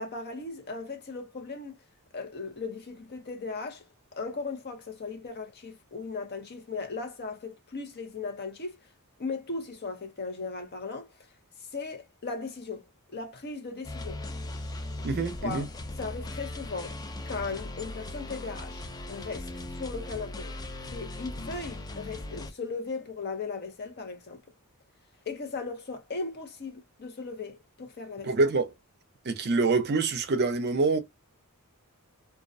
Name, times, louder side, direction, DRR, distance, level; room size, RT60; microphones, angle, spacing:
voice 1, 0.0-1.8 2.1-3.8 4.1-8.8 9.2-11.1 11.7-12.9 13.1-14.2 15.1-15.7 16.0-20.6 20.9-24.4 25.3-28.3, left 4 dB, 45° left, 0.7 m, -37 dB
sound 1, 13.8-22.5, left 1 dB, 15° left, 0.3 m, -38 dB
voice 2, 15.0-15.7 28.2-28.7 29.3-31.0, right 3 dB, 45° right, 0.5 m, -25 dB
2.3 x 2.1 x 2.5 m
head